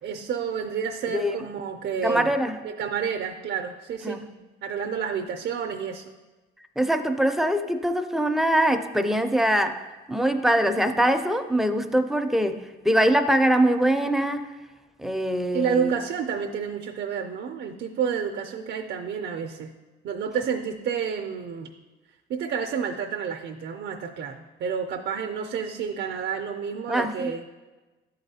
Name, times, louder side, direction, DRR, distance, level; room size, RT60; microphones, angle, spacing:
voice 1, 0.0-2.3 2.6-4.3 4.6-6.1 15.5-19.7 20.0-21.7 22.3-27.5, right 7 dB, 65° right, 4 dB, 0.4 m, -30 dB
voice 2, 1.1-1.5 2.0-2.6 4.0-4.3 6.8-14.5 15.0-15.9 26.9-27.3, right 1 dB, ahead, 7 dB, 0.4 m, -23 dB
11.0 x 4.0 x 2.7 m, 1.2 s
cardioid pair, 90°, 20 cm